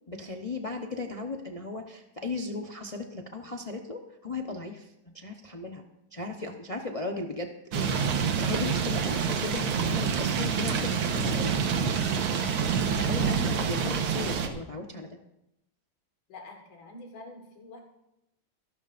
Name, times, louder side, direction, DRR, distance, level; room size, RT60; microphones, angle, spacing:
voice 1, 0.1-5.8 6.1-11.9 12.8-15.2, left 3 dB, 55° left, 2 dB, 0.4 m, -36 dB
sound 1, 7.7-14.5, right 6 dB, 85° right, 2.0 m, -27 dB
voice 2, 16.3-17.8, left 2 dB, 75° left, 2 dB, 2.5 m, -46 dB
24.0 x 12.5 x 2.6 m, 0.87 s
omnidirectional pair, 2.3 m